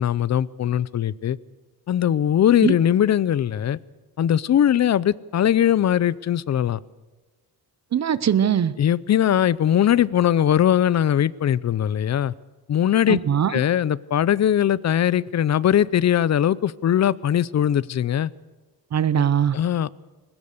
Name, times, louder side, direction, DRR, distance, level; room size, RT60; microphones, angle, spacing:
voice 1, 0.0-1.4 1.9-3.8 4.2-6.8 8.8-12.3 12.7-13.2 13.5-18.3 19.5-19.9, left 10 dB, 45° left, 20 dB, 0.6 m, -20 dB
voice 2, 7.9-8.7 13.1-13.6 18.9-19.6, right 9 dB, 45° right, 15 dB, 0.7 m, -21 dB
22.0 x 19.5 x 6.6 m, 1.2 s
wide cardioid pair, 165°, 38 cm